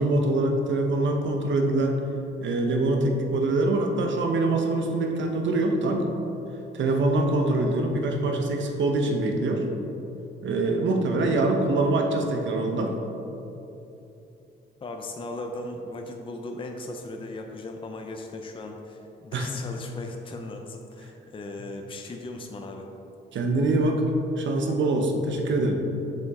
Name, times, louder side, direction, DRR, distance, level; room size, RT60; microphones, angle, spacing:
voice 1, 0.0-2.1 2.4-6.1 6.7-9.6 10.4-12.9 19.3-19.5 23.3-24.0 24.4-25.8, right 2 dB, 70° right, 3 dB, 0.9 m, -24 dB
voice 2, 14.8-22.9, left 2 dB, 25° left, 3 dB, 0.5 m, -37 dB
7.0 x 5.5 x 3.6 m, 2.9 s
cardioid pair, 105°, 20 cm